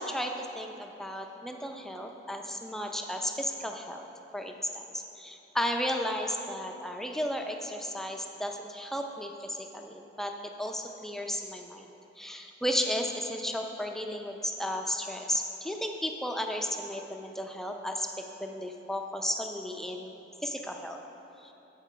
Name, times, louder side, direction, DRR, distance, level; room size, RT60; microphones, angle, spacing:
voice 1, 0.0-4.0 4.3-20.1 20.4-21.0 21.4-21.5, equal, ahead, 3 dB, 0.4 m, -34 dB
8.2 x 6.6 x 4.9 m, 2.9 s
head